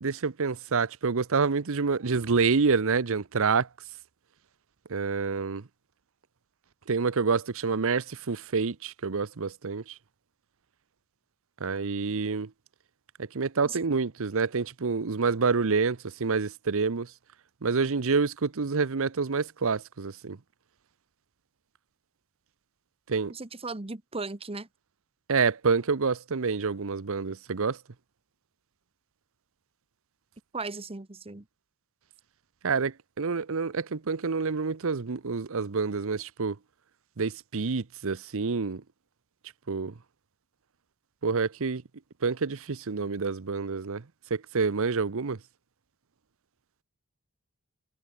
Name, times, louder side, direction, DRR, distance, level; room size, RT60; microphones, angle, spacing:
voice 1, 0.0-3.7 4.9-5.6 6.9-9.8 11.6-12.5 13.3-17.1 17.6-20.4 23.1-23.3 25.3-27.8 32.6-36.6 37.2-38.8 39.7-39.9 41.2-41.8 42.2-44.0 44.3-45.4, right 4 dB, 65° right, 0.8 m, -27 dB
voice 2, 23.3-24.7 30.5-31.4, right 3 dB, 25° right, 1.1 m, -37 dB
head